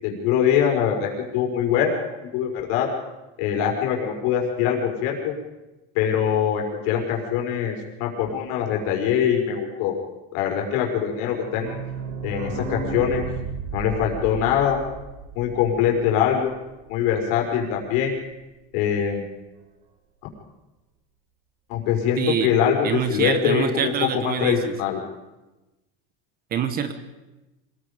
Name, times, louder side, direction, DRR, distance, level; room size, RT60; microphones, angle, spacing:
voice 1, 0.0-2.9 3.4-5.3 6.0-10.0 10.3-11.8 12.2-13.2 13.7-14.8 15.3-16.5 16.9-18.1 18.7-19.2 21.7-25.0, left 8 dB, 60° left, 0 dB, 5.2 m, -23 dB
sound 1, 11.0-16.5 16.9-17.0 17.1-17.2 17.5-17.6, right 5 dB, 70° right, 4.4 m, -34 dB
voice 2, 22.2-22.5 22.8-24.7 26.5-26.9, right 8 dB, 30° right, 10 dB, 1.3 m, -25 dB
26.5 x 20.5 x 5.2 m, 1.1 s
cardioid pair, 160°, 30 cm